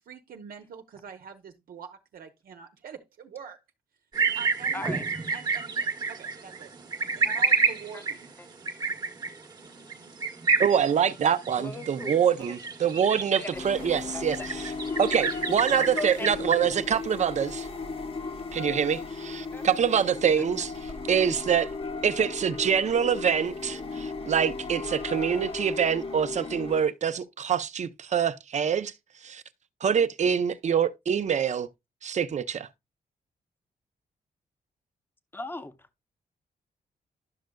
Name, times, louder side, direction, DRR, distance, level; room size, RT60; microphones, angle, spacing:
voice 1, 0.0-3.6 4.3-6.8 7.2-8.2, right 7 dB, 75° right, 0.9 m, -45 dB
sound 1, 4.1-16.8, right 5 dB, 30° right, 1.2 m, -30 dB
voice 2, 10.6-14.7 15.0-17.7 18.5-21.7 22.0-28.9 29.2-29.4 29.8-31.7 32.0-32.7, right 8 dB, 50° right, 0.7 m, -25 dB
voice 3, 11.6-12.1 12.4-12.5 13.4-14.3 16.0-16.3 18.2-18.3 19.5-19.6 35.3-35.7, left 2 dB, 15° left, 0.8 m, -38 dB
sound 2, 13.5-26.8, left 4 dB, 40° left, 1.1 m, -36 dB
11.5 x 6.4 x 2.3 m
wide cardioid pair, 135°, 15 cm